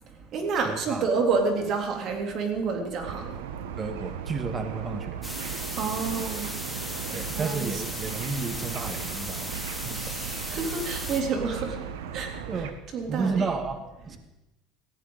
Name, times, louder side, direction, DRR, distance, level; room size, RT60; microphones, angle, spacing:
voice 1, 0.0-3.4 5.8-6.5 7.3-7.8 9.9-12.6 12.9-13.4, right 4 dB, 50° right, 2 dB, 3.4 m, -29 dB
voice 2, 0.7-1.1 3.8-5.2 7.1-10.3 12.5-12.8 13.1-14.2, right 4 dB, 30° right, 7 dB, 1.6 m, -32 dB
sound 1, 3.0-12.7, right 8 dB, 90° right, 1.2 m, -37 dB
sound 2, 5.2-11.2, equal, ahead, 2.5 m, -36 dB
18.0 x 15.0 x 4.0 m, 0.97 s
supercardioid pair, 105°, 0 cm